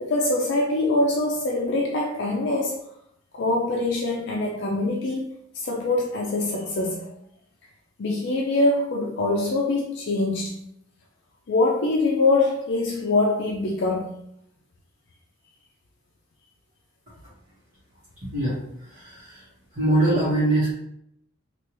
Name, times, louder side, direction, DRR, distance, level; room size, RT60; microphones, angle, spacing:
voice 1, 0.0-2.8 3.3-7.1 8.0-10.6 11.5-14.2, left 2 dB, 60° left, -1 dB, 0.4 m, -24 dB
voice 2, 18.2-19.5 19.7-20.7, right 1 dB, 40° right, -12 dB, 1.3 m, -23 dB
3.3 x 2.4 x 3.0 m, 0.76 s
head